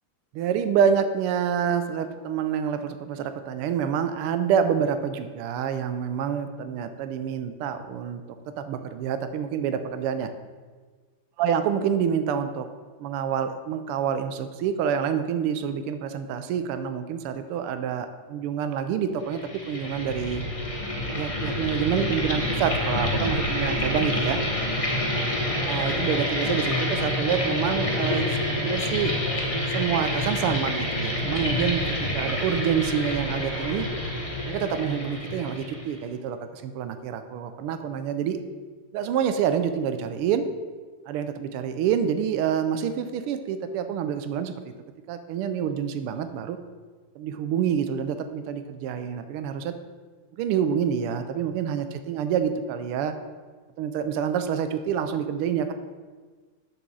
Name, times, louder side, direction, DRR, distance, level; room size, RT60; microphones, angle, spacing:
voice 1, 0.3-8.2 8.6-10.3 11.4-12.7 13.0-20.4 21.1-24.4 25.6-28.3 28.6-29.1 29.7-31.8 32.1-33.9 34.5-38.4 38.9-40.4 41.1-44.5 45.1-46.6 47.2-49.7 50.4-53.1 53.8-55.7, right 8 dB, 85° right, 9 dB, 1.5 m, -27 dB
sound 1, 19.3-36.0, left 1 dB, 40° left, 0.4 m, -27 dB
6.9 x 5.0 x 6.1 m, 1.4 s
omnidirectional pair, 2.4 m